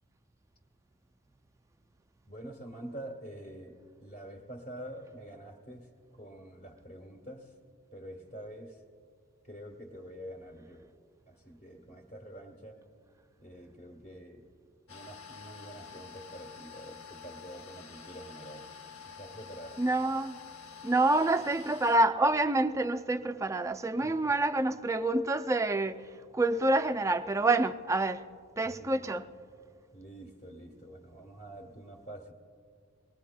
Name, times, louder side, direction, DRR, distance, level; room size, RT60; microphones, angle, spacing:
voice 1, 2.3-7.5 7.9-8.8 9.5-10.9 11.3-12.8 13.4-14.4 14.9-18.7 19.2-19.8 24.0-24.3 28.6-29.1 29.9-32.3, right 1 dB, 40° left, 1.3 m, -46 dB
sound 1, 14.9-22.0, left 6 dB, 80° left, 0.9 m, -48 dB
voice 2, 19.8-20.4 20.8-26.0 26.3-28.2 28.6-29.2, right 2 dB, 15° right, 0.3 m, -27 dB
23.0 x 20.0 x 2.2 m
head